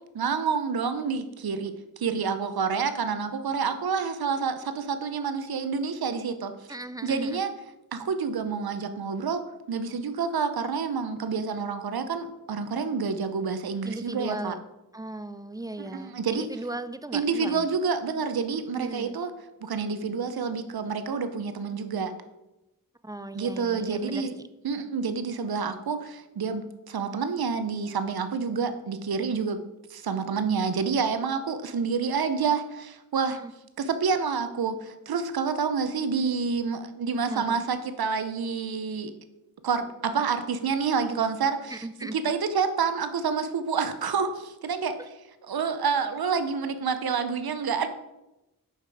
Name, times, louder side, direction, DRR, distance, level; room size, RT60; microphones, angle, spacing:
voice 1, 0.1-6.5 7.0-7.5 7.9-9.4 9.7-14.6 15.8-16.5 17.1-19.3 19.6-22.1 23.3-24.4 24.6-29.6 29.9-33.4 33.8-39.1 39.6-41.9 42.1-44.9 45.5-47.9, right 5 dB, 85° right, 10 dB, 0.7 m, -28 dB
voice 2, 6.7-7.4 13.8-14.6 14.9-17.7 18.7-19.2 23.0-24.3 33.4-33.5 37.2-37.6 41.7-42.2, right 2 dB, 10° right, 12 dB, 0.4 m, -37 dB
5.8 x 5.6 x 4.8 m, 0.96 s
cardioid pair, 40°, 36 cm